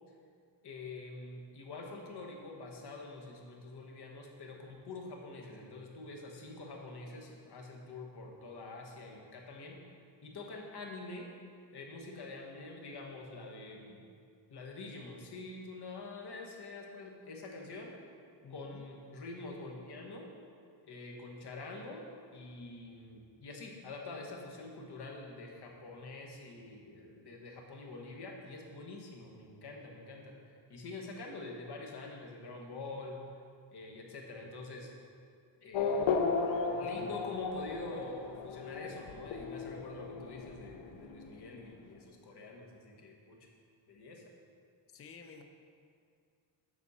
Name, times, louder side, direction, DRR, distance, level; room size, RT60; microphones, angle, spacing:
voice 1, 0.6-9.8 10.2-11.3 11.7-14.0 14.5-17.9 18.5-20.3 20.8-22.1 22.3-33.2 33.7-34.9 35.6-36.3 36.8-43.5 43.9-44.2, left 2 dB, 60° left, 0 dB, 1.2 m, -46 dB
voice 2, 18.4-18.8 44.9-45.4, left 5 dB, 30° left, 5 dB, 0.5 m, -51 dB
Race car auto racing / Accelerating revving vroom, 35.7-41.8, left 4 dB, 80° left, 0.6 m, -35 dB
7.2 x 6.2 x 4.1 m, 2.2 s
wide cardioid pair, 120°, 44 cm